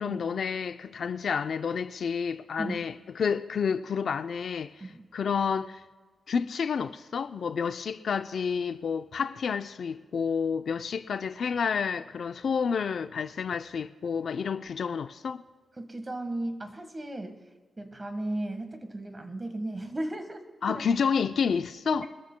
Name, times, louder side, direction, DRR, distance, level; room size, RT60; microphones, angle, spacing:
voice 1, 0.0-4.7 5.1-5.8 6.3-15.4 20.6-22.1, left 6 dB, 65° left, 0.5 m, -29 dB
voice 2, 15.8-17.4 17.8-20.8 21.8-22.1, right 1 dB, 25° right, 1.5 m, -35 dB
24.0 x 13.5 x 2.2 m
wide cardioid pair, 115°, 0 cm